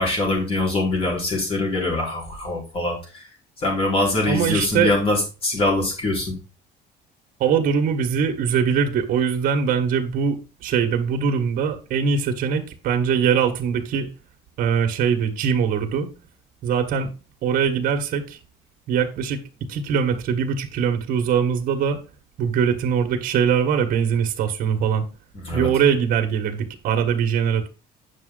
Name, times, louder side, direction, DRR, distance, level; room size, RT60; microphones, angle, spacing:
voice 1, 0.0-3.3 3.6-6.3 25.3-25.7, left 2 dB, 35° left, 4.5 m, -23 dB
voice 2, 4.3-4.9 7.4-14.1 14.6-16.1 16.6-17.1 17.4-18.4 18.9-19.4 19.7-22.0 22.4-25.0 25.5-27.7, right 7 dB, 55° right, 1.5 m, -22 dB
8.9 x 6.2 x 3.9 m
cardioid pair, 150°, 17 cm